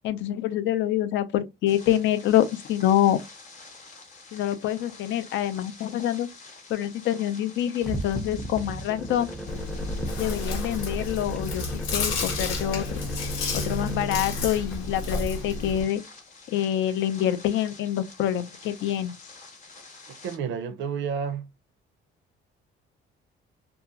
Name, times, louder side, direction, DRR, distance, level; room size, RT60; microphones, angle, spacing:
voice 1, 0.0-3.2 4.3-6.3 6.7-9.3 10.2-13.0 13.5-16.0 16.5-19.2, left 11 dB, 70° left, 0.4 m, -26 dB
sound 1, 1.7-20.4, left 3 dB, 35° left, 0.8 m, -48 dB
sound 2, 7.8-15.3, right 1 dB, ahead, 0.4 m, -37 dB
Chewing mastication, 9.5-15.8, left 3 dB, 90° left, 0.9 m, -31 dB
voice 2, 20.2-21.5, right 7 dB, 65° right, 0.5 m, -30 dB
2.7 x 2.4 x 2.4 m
cardioid pair, 125°, 20 cm